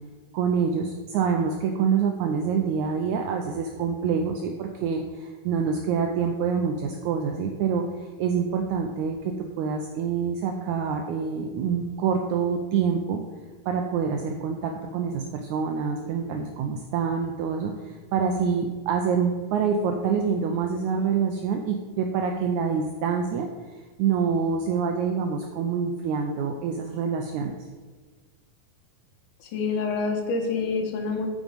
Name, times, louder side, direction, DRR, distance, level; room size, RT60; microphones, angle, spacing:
voice 1, 0.3-7.8 8.2-13.2 13.7-23.5 24.0-27.5, right 6 dB, 75° right, 3 dB, 1.8 m, -26 dB
voice 2, 29.4-31.3, left 4 dB, 70° left, 4 dB, 2.5 m, -27 dB
9.1 x 6.2 x 5.2 m, 1.4 s
omnidirectional pair, 4.0 m